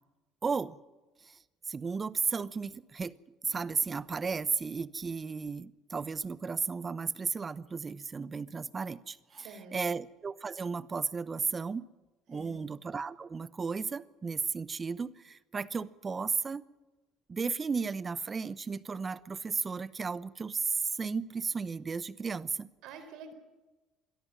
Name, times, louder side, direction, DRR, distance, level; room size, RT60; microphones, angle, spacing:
voice 1, 0.4-0.8 1.3-1.4 1.7-3.1 3.4-11.9 12.3-16.6 17.3-22.7, right 5 dB, 30° right, 18 dB, 0.9 m, -34 dB
voice 2, 9.3-9.9 12.3-12.7 22.8-23.3, right 5 dB, 70° right, 9 dB, 4.4 m, -48 dB
22.0 x 13.5 x 10.0 m, 1.1 s
supercardioid pair, 90°, 0 cm